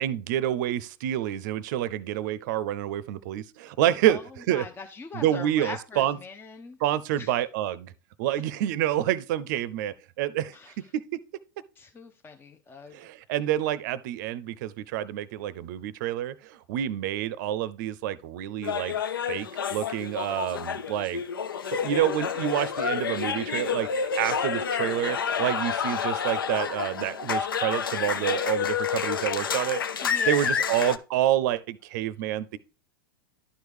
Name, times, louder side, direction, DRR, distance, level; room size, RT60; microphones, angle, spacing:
voice 1, 0.0-4.6 5.1-6.2 6.8-7.9 8.2-11.2 12.9-19.0 19.3-21.2 21.7-32.6, right 12 dB, 60° right, 0.6 m, -28 dB
voice 2, 4.5-6.8 7.2-7.3 10.5-10.7 11.8-12.9 30.0-30.6, left 4 dB, 20° left, 0.6 m, -41 dB
sound 1, 18.6-31.0, left 7 dB, 80° left, 0.5 m, -29 dB
11.5 x 4.7 x 3.4 m
hypercardioid pair, 95°, 11 cm